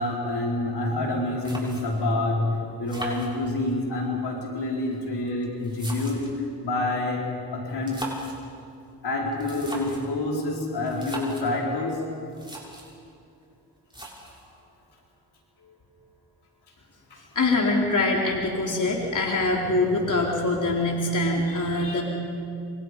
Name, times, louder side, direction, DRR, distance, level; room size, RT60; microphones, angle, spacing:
voice 1, 0.0-6.3 6.6-8.0 9.0-12.0 15.6-15.8, left 2 dB, 75° left, -2 dB, 5.1 m, -27 dB
sound 1, 1.4-2.1 2.9-3.8 4.7-6.4 7.7-8.5 9.3-10.1 10.9-11.5 12.0-12.1 12.3-13.0 13.9-14.5, right 1 dB, 10° right, 7.4 m, -39 dB
voice 2, 17.4-22.0, left 2 dB, 50° left, -1 dB, 3.9 m, -24 dB
27.5 x 27.5 x 5.4 m, 2.5 s
supercardioid pair, 50°, 40 cm